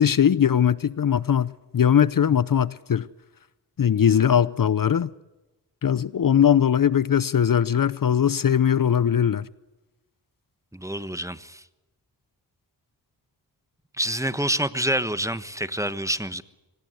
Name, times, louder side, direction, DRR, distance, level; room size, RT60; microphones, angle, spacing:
voice 1, 0.0-3.1 3.8-5.1 5.8-9.5, left 8 dB, 50° left, 0.8 m, -20 dB
voice 2, 10.7-11.6 14.0-16.4, right 1 dB, 5° right, 1.2 m, -27 dB
24.5 x 19.0 x 8.1 m
cardioid pair, 60°, 42 cm